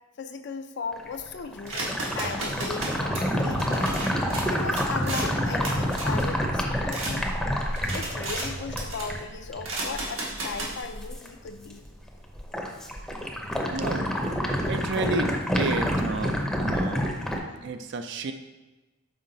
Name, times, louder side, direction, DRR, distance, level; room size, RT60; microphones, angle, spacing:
voice 1, 0.2-4.0 4.5-7.2 7.9-11.8, left 5 dB, 60° left, 8 dB, 0.5 m, -37 dB
sound 1, 0.9-11.3 11.6-12.1 12.4-17.4, equal, 5° left, 0.6 m, -28 dB
sound 2, 1.7-7.1 7.6-8.5 8.8-9.2 9.6-10.8, right 2 dB, 85° right, 1.4 m, -35 dB
voice 2, 13.7-14.1 14.7-17.2 17.6-18.3, right 3 dB, 60° right, 8 dB, 0.4 m, -31 dB
5.7 x 4.4 x 3.8 m, 1.1 s
head